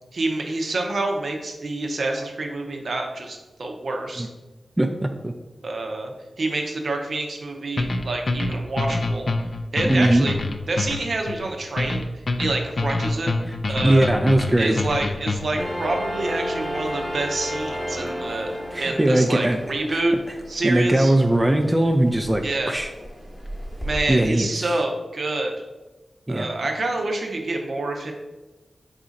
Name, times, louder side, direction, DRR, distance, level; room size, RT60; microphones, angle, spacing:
voice 1, 0.1-4.3 5.6-9.3 9.7-10.4 10.7-13.3 13.7-14.1 14.6-20.1 20.5-21.1 22.4-22.8 23.8-25.5 26.3-28.1, right 2 dB, 70° right, 2 dB, 0.6 m, -27 dB
voice 2, 4.8-5.3 9.9-10.3 13.8-14.8 18.7-19.6 19.9-20.0 20.6-22.9 24.1-24.7 26.3-26.5, right 1 dB, 20° right, 4 dB, 0.3 m, -20 dB
sound 1, 7.8-15.7, left 2 dB, 55° left, 0.3 m, -26 dB
sound 2, 15.6-24.1, equal, ahead, 0.9 m, -33 dB
4.1 x 2.5 x 3.9 m, 1.1 s
cardioid pair, 50°, 0 cm